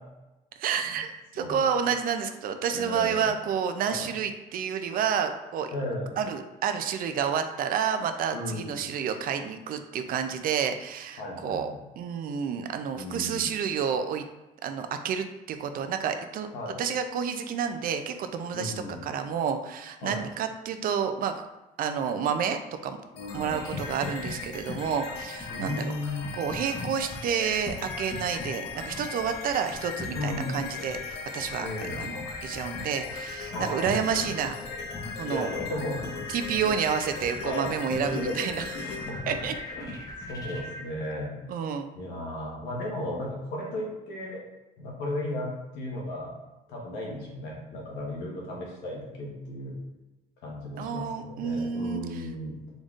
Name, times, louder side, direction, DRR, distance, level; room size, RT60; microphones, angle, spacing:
voice 1, 0.6-5.7 6.2-14.3 14.6-21.4 21.8-23.0 23.3-25.8 26.3-34.6 35.2-35.5 36.3-39.0 39.3-39.5 41.5-41.9 50.8-52.3, right 7 dB, 60° right, 7 dB, 0.4 m, -30 dB
voice 2, 2.7-3.3 3.8-4.1 5.7-6.1 8.3-8.7 11.2-11.6 12.9-13.5 16.5-16.8 18.5-19.0 20.0-20.2 23.1-23.6 25.5-26.4 30.1-30.6 31.6-32.0 33.5-34.2 35.2-36.3 37.4-39.3 39.7-40.0 40.3-41.3 41.9-44.4 44.8-46.3 46.7-49.7 50.4-52.6, left 1 dB, 90° left, -3 dB, 1.2 m, -35 dB
sound 1, 23.2-40.8, left 5 dB, 70° left, 0.5 m, -39 dB
sound 2, 23.2-40.6, left 3 dB, 20° left, 0.8 m, -42 dB
3.9 x 3.5 x 2.4 m, 1.0 s
cardioid pair, 110°, 17 cm